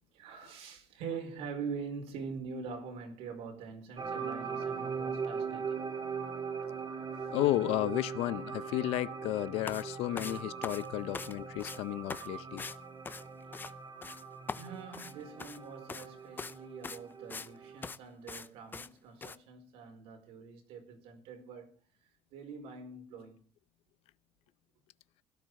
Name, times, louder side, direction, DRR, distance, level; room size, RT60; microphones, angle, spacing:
voice 1, 0.1-5.8 14.5-21.7 22.3-23.4, right 5 dB, 80° right, 4.7 m, -44 dB
sound 1, 4.0-17.9, right 5 dB, 40° right, 2.4 m, -40 dB
voice 2, 7.3-12.7, left 16 dB, 80° left, 0.6 m, -33 dB
sound 2, 9.6-9.8 10.2-11.3 11.6-11.8 12.1-12.3 12.6-12.8 13.0-13.7 14.0-14.2 14.5-15.6 15.9-16.1 16.4-16.6 16.8-17.5 17.8-18.0 18.3-18.5 18.7-18.9 19.2-19.4, left 4 dB, 20° left, 0.6 m, -42 dB
17.0 x 12.0 x 4.8 m
cardioid pair, 135°, 10 cm